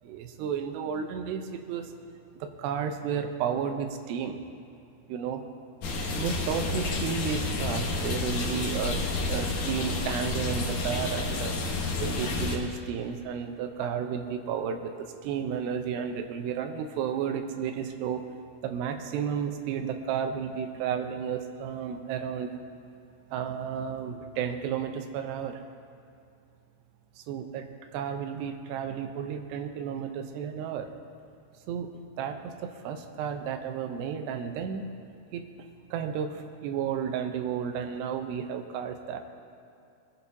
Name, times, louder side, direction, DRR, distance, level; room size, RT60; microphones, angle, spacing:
voice 1, 0.1-1.9 2.4-4.4 5.1-5.4 6.1-9.0 9.3-11.5 12.0-18.2 18.6-22.5 23.3-25.6 27.3-27.7 27.9-30.9 31.7-31.9 32.2-34.9 35.3-35.4 35.9-39.2, right 7 dB, 80° right, 5 dB, 2.9 m, -32 dB
sound 1, 5.8-12.6, left 3 dB, 65° left, 2.1 m, -30 dB
21.5 x 11.0 x 2.8 m, 2.5 s
omnidirectional pair, 4.9 m